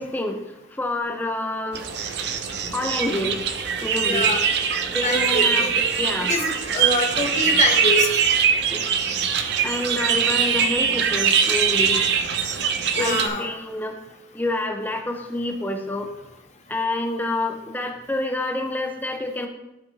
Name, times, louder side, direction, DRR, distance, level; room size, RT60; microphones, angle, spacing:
voice 1, 0.0-1.8 2.7-3.4 3.8-4.3 4.9-5.7 6.0-6.3 8.7-8.8 9.6-12.0 13.0-14.0 14.3-16.1 16.7-19.5, left 2 dB, 10° left, 3 dB, 0.6 m, -28 dB
sound 1, 1.7-13.3, right 7 dB, 55° right, 0.5 m, -22 dB
voice 2, 4.0-4.4 5.0-5.8 6.2-8.1 13.0-13.5, left 2 dB, 35° left, 4 dB, 0.8 m, -25 dB
12.5 x 4.2 x 2.8 m, 0.96 s
head